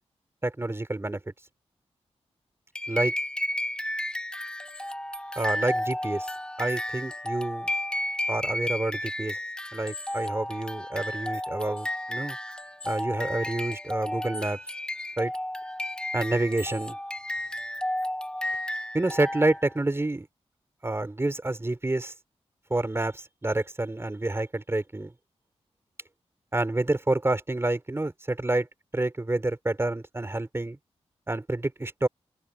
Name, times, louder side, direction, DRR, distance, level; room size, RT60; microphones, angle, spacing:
voice 1, 0.4-1.2 2.9-3.1 5.4-6.3 6.6-7.7 8.3-9.4 9.7-12.4 12.8-14.6 15.2-15.3 16.1-17.0 18.9-20.3 20.8-22.1 22.7-25.1 26.5-28.7 28.9-30.8 31.3-32.1, right 2 dB, 20° right, 3.7 m, -28 dB
sound 1, 2.7-19.8, left 1 dB, 10° left, 1.1 m, -32 dB
open air
wide cardioid pair, 85°, 11 cm